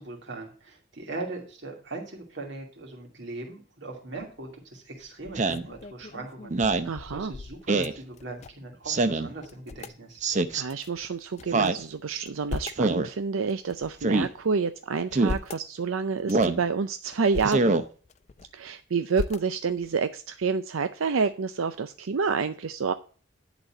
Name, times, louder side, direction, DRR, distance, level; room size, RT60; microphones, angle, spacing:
voice 1, 0.0-10.2, right 2 dB, 60° right, 0 dB, 2.4 m, -40 dB
sound 1, 4.2-4.5 5.0-8.8 9.0-9.1 9.4-10.0 10.7-11.7 12.1-12.9 13.5-14.4 14.9-15.7 16.2-16.6 17.1-17.6 18.0-18.7 19.1-19.9, left 3 dB, 35° left, 0.4 m, -39 dB
Speech synthesizer, 5.3-5.7 6.5-6.9 7.7-8.0 8.9-9.3 10.2-10.6 11.5-11.8 12.8-13.1 14.0-14.3 15.1-15.4 16.3-16.6 17.4-17.8, right 3 dB, 35° right, 0.6 m, -24 dB
voice 2, 6.8-7.3 10.5-17.8 18.5-22.9, right 5 dB, 90° right, 10 dB, 0.5 m, -28 dB
10.5 x 4.2 x 7.5 m, 0.40 s
head